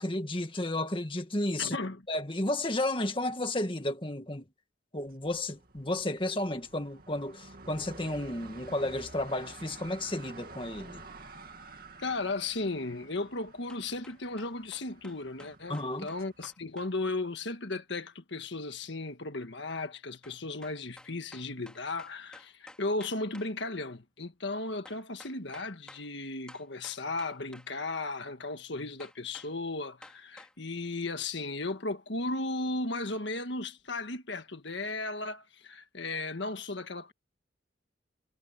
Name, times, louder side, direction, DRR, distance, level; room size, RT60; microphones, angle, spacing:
voice 1, 0.0-1.8 2.1-4.4 4.9-11.0 15.7-16.1, left 1 dB, 25° left, 1.9 m, -32 dB
voice 2, 1.6-2.0 12.0-37.1, left 2 dB, 65° left, 1.6 m, -35 dB
sound 1, 5.1-16.5, right 3 dB, 50° right, 2.4 m, -50 dB
sound 2, 13.7-16.9 20.2-23.5 24.8-26.1 26.5-27.7 29.0-29.5 30.0-30.5, left 1 dB, 5° left, 4.5 m, -53 dB
head